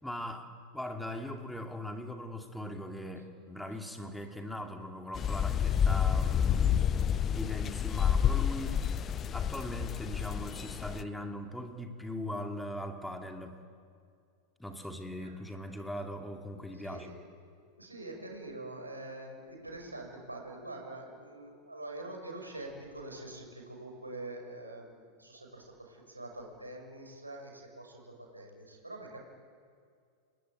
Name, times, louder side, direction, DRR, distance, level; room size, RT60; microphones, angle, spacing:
voice 1, 0.0-6.8 7.3-8.8 9.3-13.6 14.6-17.1, left 1 dB, 5° left, 4 dB, 2.6 m, -40 dB
sound 1, 5.1-11.0, left 8 dB, 25° left, 0.7 m, -29 dB
voice 2, 16.7-17.1 17.8-29.2, right 2 dB, 85° right, 0 dB, 6.5 m, -45 dB
29.5 x 19.0 x 9.3 m, 2.3 s
figure-of-eight pair, 90°, 0 cm